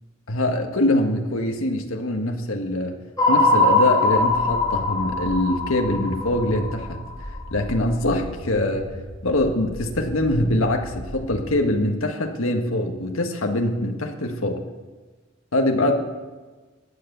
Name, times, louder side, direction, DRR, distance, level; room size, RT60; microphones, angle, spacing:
voice 1, 0.3-8.9 9.2-14.5 15.5-15.9, left 1 dB, 80° left, 3 dB, 1.5 m, -23 dB
sound 1, 3.2-7.4, left 2 dB, 20° left, 3.6 m, -21 dB
sound 2, 4.2-11.7, equal, 50° left, 2.4 m, -38 dB
15.0 x 9.4 x 6.8 m, 1.3 s
head